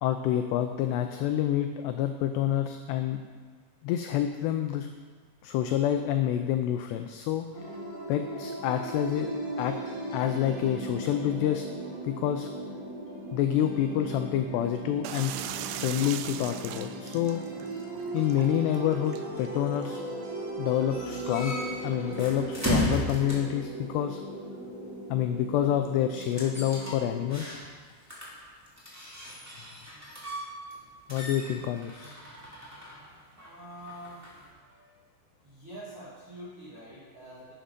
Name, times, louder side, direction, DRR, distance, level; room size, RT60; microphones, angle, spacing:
voice 1, 0.0-3.2 3.8-4.9 5.4-7.5 8.1-9.3 9.6-9.8 10.1-11.6 12.0-12.5 13.3-15.5 15.8-17.6 18.1-20.0 20.6-21.5 21.8-24.2 25.1-27.7 31.1-32.2, left 11 dB, 85° left, 7 dB, 2.4 m, -28 dB
sound 1, 7.5-27.3, right 2 dB, 35° right, 3.3 m, -38 dB
sound 2, 15.0-20.5, right 11 dB, 90° right, 3.1 m, -41 dB
sound 3, 20.9-23.6 26.2-27.8 28.1-30.8 31.1-34.5, equal, 10° right, 0.7 m, -35 dB
voice 2, 33.3-35.1 35.4-37.5, equal, 60° right, -8 dB, 1.4 m, -46 dB
11.5 x 9.2 x 5.2 m, 1.5 s
omnidirectional pair, 5.4 m